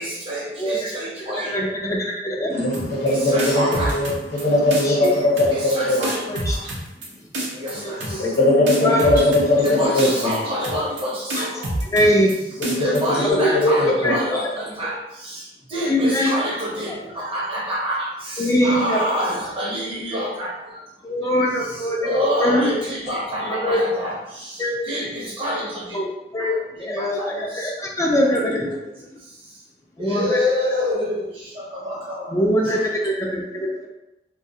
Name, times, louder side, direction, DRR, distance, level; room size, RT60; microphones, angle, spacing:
voice 1, 0.0-1.7 3.0-4.0 5.5-6.2 7.5-8.3 9.6-11.7 12.8-20.8 21.2-26.0 26.4-27.8 29.2-29.6 30.0-32.8, equal, 30° right, -6 dB, 0.7 m, -28 dB
voice 2, 1.4-2.7 4.8-5.1 6.3-6.6 7.8-8.3 8.8-9.1 11.9-12.3 13.4-14.5 15.9-16.3 18.4-19.0 21.0-22.7 23.5-23.8 24.6-24.7 25.9-26.1 26.3-26.5 26.8-28.8 30.0-30.4 32.3-33.9, equal, 20° left, -2 dB, 0.4 m, -22 dB
voice 3, 2.5-6.1 6.5-6.7 8.0-10.4 12.6-14.1 32.6-32.8, left 1 dB, 60° left, -5 dB, 0.9 m, -20 dB
sound 1, 2.7-3.1 3.4-4.4 4.7-5.1 5.4-5.7 6.0-7.1 7.3-7.7 8.0-8.4 8.7-9.7 10.0-10.4 10.6-11.0 11.3-12.3 12.6-13.0, right 1 dB, 90° right, 0.6 m, -27 dB
2.3 x 2.2 x 2.7 m, 0.93 s
head